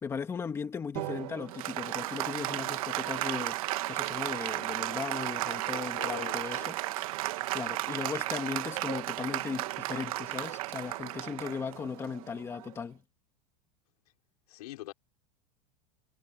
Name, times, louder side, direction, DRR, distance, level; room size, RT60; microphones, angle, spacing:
voice 1, 0.0-3.6 3.9-6.8 7.1-13.0, left 6 dB, 15° left, 2.1 m, -37 dB
Applause, 1.0-12.8, right 18 dB, 70° right, 1.7 m, -34 dB
voice 2, 5.7-6.7 14.5-14.9, left 16 dB, 90° left, 6.0 m, -43 dB
supercardioid pair, 175°, 19 cm